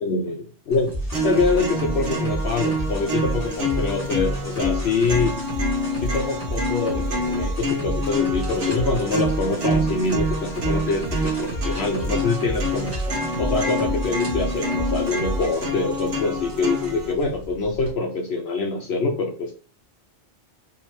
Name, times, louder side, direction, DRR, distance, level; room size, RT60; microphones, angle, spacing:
voice 1, 0.0-0.9 1.2-5.4 6.0-13.0 13.4-19.5, left 3 dB, 65° left, 2 dB, 0.9 m, -25 dB
sound 1, 0.7-17.9, left 1 dB, 10° right, 1.6 m, -43 dB
sound 2, 0.9-15.6, right 1 dB, 30° left, 2.2 m, -30 dB
sound 3, 1.1-17.1, equal, 60° right, 1.4 m, -27 dB
4.8 x 3.1 x 3.1 m, 0.37 s
omnidirectional pair, 1.2 m